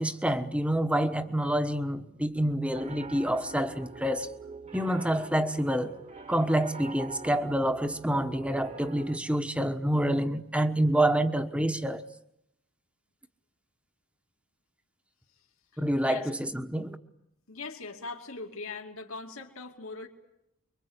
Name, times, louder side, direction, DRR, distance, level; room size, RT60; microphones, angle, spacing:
voice 1, 0.0-4.3 4.7-5.9 6.3-12.0 15.8-17.0, right 1 dB, 5° right, 1.2 m, -27 dB
Piano, 2.7-9.2, right 3 dB, 30° right, 1.5 m, -44 dB
voice 2, 15.7-16.3 17.5-20.1, left 3 dB, 75° left, 2.7 m, -41 dB
25.0 x 24.0 x 8.2 m
head